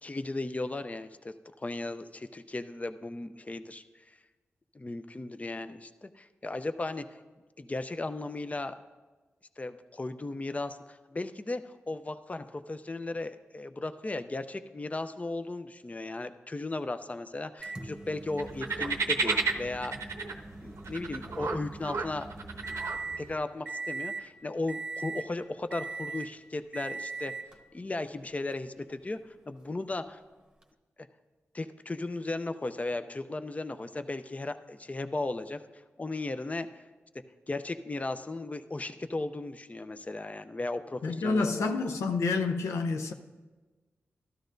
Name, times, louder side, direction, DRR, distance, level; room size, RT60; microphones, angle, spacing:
voice 1, 0.0-3.8 4.7-7.1 7.6-8.8 9.6-20.1 20.6-22.3 23.2-27.3 27.7-29.2 29.5-30.2 31.0-31.1 31.5-35.6 36.0-36.8 37.5-41.7, left 2 dB, 30° left, 0.5 m, -36 dB
Microwave oven, 17.6-23.3 23.7-24.3 24.7-25.3 25.7-26.3 26.7-27.6 28.5-28.6 30.6-30.7, right 3 dB, 15° right, 1.1 m, -40 dB
sound 1, 18.4-23.4, right 4 dB, 80° right, 0.7 m, -33 dB
voice 2, 41.0-43.1, left 4 dB, 90° left, 0.6 m, -28 dB
12.5 x 12.5 x 2.6 m
cardioid pair, 45°, 5 cm